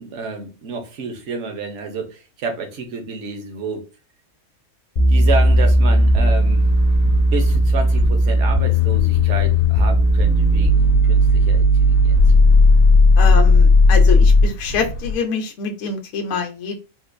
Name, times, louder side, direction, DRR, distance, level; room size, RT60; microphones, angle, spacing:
voice 1, 0.0-3.9 5.1-6.7 7.2-12.2, right 4 dB, 60° right, 1.0 m, -30 dB
sound 1, 5.0-14.5, left 1 dB, 50° left, 0.6 m, -14 dB
sound 2, 5.2-15.2, left 2 dB, 90° left, 1.0 m, -29 dB
voice 2, 13.2-16.8, left 5 dB, 70° left, 0.9 m, -25 dB
3.7 x 2.4 x 2.5 m
omnidirectional pair, 1.4 m